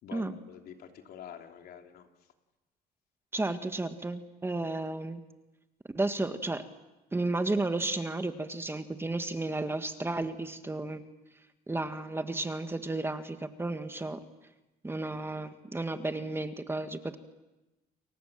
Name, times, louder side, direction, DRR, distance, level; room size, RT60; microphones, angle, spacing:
voice 1, 0.0-2.1, left 8 dB, 70° left, 4 dB, 3.3 m, -47 dB
voice 2, 3.3-5.2 5.9-6.6 7.1-11.0 11.7-14.2 14.8-17.2, right 2 dB, 15° right, 8 dB, 1.8 m, -33 dB
30.0 x 23.5 x 7.5 m, 1.0 s
cardioid pair, 110°, 17 cm